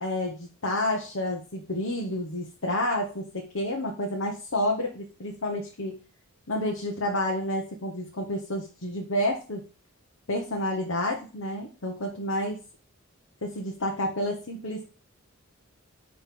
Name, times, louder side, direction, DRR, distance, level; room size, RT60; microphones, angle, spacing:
voice 1, 0.0-6.0 6.5-9.6 10.3-12.6 13.4-14.8, left 1 dB, 75° left, 0 dB, 1.2 m, -30 dB
10.0 x 3.4 x 3.8 m, 0.35 s
head